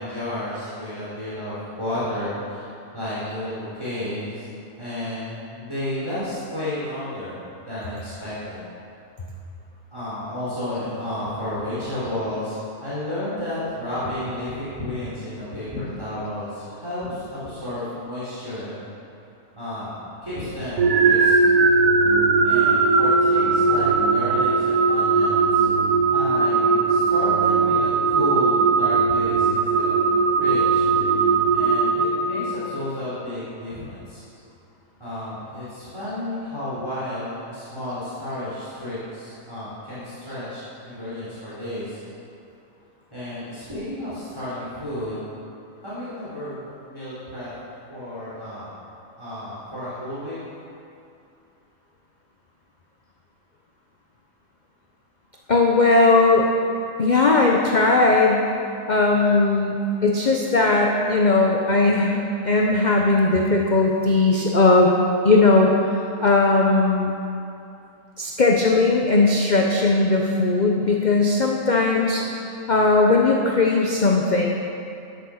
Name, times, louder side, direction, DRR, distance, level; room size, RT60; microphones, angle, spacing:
voice 1, 0.0-4.5 4.8-8.6 9.9-18.9 19.6-21.4 22.4-25.6 26.1-34.2 35.0-42.0 43.1-45.3 45.8-47.5 47.9-48.8 49.2-50.4, left 1 dB, 20° right, -11 dB, 3.6 m, -32 dB
sound 1, 20.8-32.7, right 4 dB, 80° right, 1.4 m, -19 dB
voice 2, 55.5-56.5 57.0-58.5 58.9-64.9 65.2-65.9 66.2-67.1 68.2-72.3 72.7-74.4, left 3 dB, 40° left, 0 dB, 0.7 m, -18 dB
12.5 x 7.7 x 6.4 m, 2.7 s
omnidirectional pair, 1.6 m